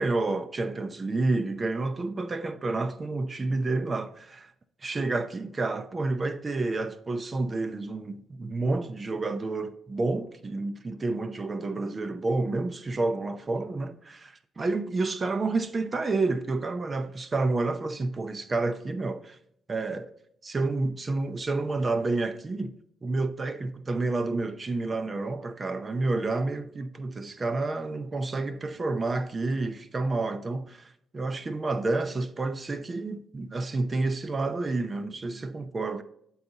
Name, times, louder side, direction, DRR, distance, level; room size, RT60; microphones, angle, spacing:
voice 1, 0.0-4.5 4.8-19.4 19.7-20.1 20.4-22.7 23.0-36.0, right 3 dB, 30° right, 0.6 m, -29 dB
12.0 x 4.1 x 2.8 m
cardioid pair, 90°, 0 cm